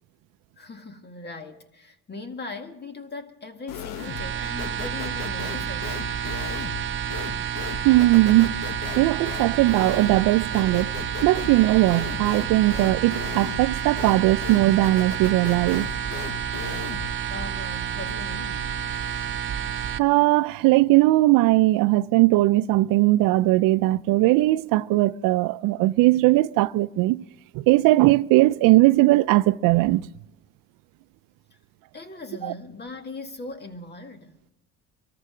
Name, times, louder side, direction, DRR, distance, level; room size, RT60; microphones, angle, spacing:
voice 1, 0.6-6.0 17.3-18.7 31.9-34.4, left 3 dB, 30° left, 2.0 m, -39 dB
sound 1, 3.7-4.3 4.6-17.2, left 8 dB, 75° left, 1.0 m, -37 dB
sound 2, 3.9-20.0, right 8 dB, 35° right, 0.8 m, -30 dB
voice 2, 7.8-8.6 9.0-10.9 11.2-15.9 20.0-27.2 27.5-30.1 32.4-32.5, right 18 dB, 85° right, 0.5 m, -19 dB
24.5 x 14.0 x 3.8 m
cardioid pair, 100°, 33 cm